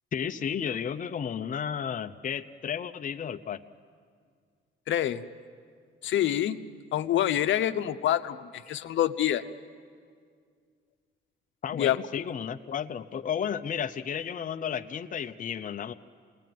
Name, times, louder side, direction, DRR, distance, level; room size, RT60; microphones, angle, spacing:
voice 1, 0.1-3.6 8.7-8.8 11.6-15.9, left 8 dB, 40° left, 7 dB, 0.7 m, -33 dB
voice 2, 4.9-5.2 6.0-6.6 6.9-9.4 11.7-12.0, left 11 dB, 70° left, 9 dB, 0.9 m, -26 dB
27.0 x 20.0 x 9.3 m, 2.1 s
cardioid pair, 90°, 20 cm